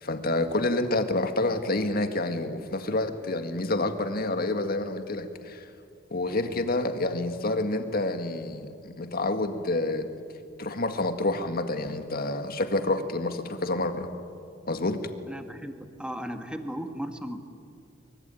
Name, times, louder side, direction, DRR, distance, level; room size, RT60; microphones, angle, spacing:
voice 1, 0.0-5.7 6.1-10.1 10.6-14.1 14.7-15.1, left 2 dB, 50° left, 7 dB, 1.9 m, -28 dB
voice 2, 15.3-17.4, equal, 5° right, 6 dB, 1.7 m, -36 dB
24.0 x 24.0 x 9.3 m, 2.4 s
head